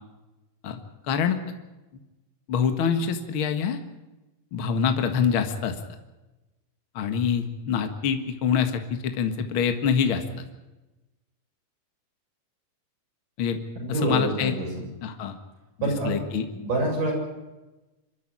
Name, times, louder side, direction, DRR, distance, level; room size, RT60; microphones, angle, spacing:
voice 1, 1.1-1.4 2.5-3.8 4.5-5.8 7.0-10.2 13.4-13.6 13.9-14.5 15.0-15.4 15.8-16.5, left 7 dB, 45° left, 7 dB, 2.1 m, -25 dB
voice 2, 13.8-14.8 15.8-16.2 16.5-17.2, right 1 dB, 75° right, 0 dB, 8.9 m, -26 dB
26.0 x 13.5 x 10.0 m, 1.1 s
omnidirectional pair, 3.8 m